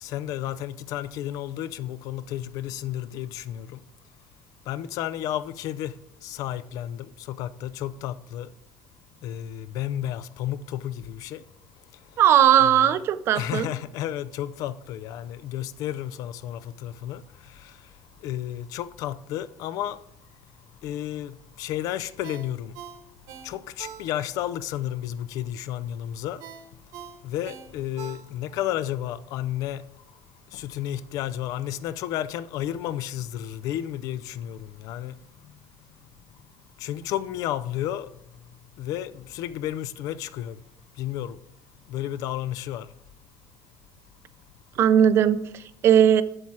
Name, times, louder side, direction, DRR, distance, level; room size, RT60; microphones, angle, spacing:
voice 1, 0.0-3.8 4.7-8.5 9.2-11.4 12.6-13.0 13.3-17.2 17.6-17.7 18.2-20.0 20.8-22.7 23.4-26.4 27.2-29.8 30.5-35.2 36.8-38.1 38.8-40.6 41.0-41.4 41.9-42.9, left 12 dB, 60° left, 0.4 m, -32 dB
voice 2, 12.2-13.7 44.8-46.2, right 9 dB, 40° right, 0.5 m, -18 dB
Ringtone, 22.2-24.5 24.9-25.0 26.4-28.7 29.0-29.1, right 8 dB, 65° right, 1.2 m, -43 dB
7.9 x 7.3 x 4.7 m
cardioid pair, 175°, 7 cm